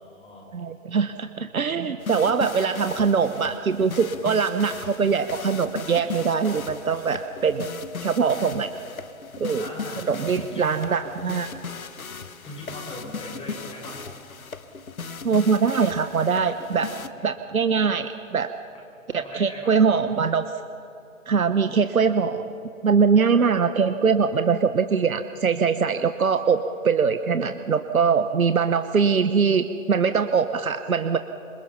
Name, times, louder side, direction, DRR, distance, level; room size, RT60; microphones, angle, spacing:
voice 1, 0.0-0.4 9.5-11.0 12.4-14.0 19.1-20.0, left 1 dB, 15° left, -1 dB, 6.7 m, -40 dB
voice 2, 0.5-7.7 8.0-8.7 9.4-9.6 10.1-11.5 15.2-16.9 17.2-18.5 19.1-20.5 21.3-22.5 22.8-31.2, right 5 dB, 85° right, 9 dB, 1.1 m, -22 dB
sound 1, 2.0-17.1, left 5 dB, 85° left, 1.4 m, -37 dB
28.5 x 26.0 x 5.8 m, 2.6 s
hypercardioid pair, 135°, 41 cm